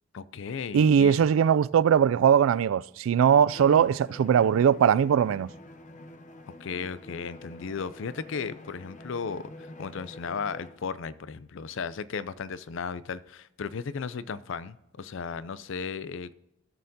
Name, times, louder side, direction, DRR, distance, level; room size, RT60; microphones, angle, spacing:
voice 1, 0.1-1.3 6.6-16.3, left 5 dB, 70° left, 0.5 m, -35 dB
voice 2, 0.7-5.5, right 8 dB, 75° right, 0.3 m, -20 dB
Bowed string instrument, 3.5-10.9, left 1 dB, 40° left, 0.7 m, -46 dB
14.5 x 6.5 x 2.8 m
head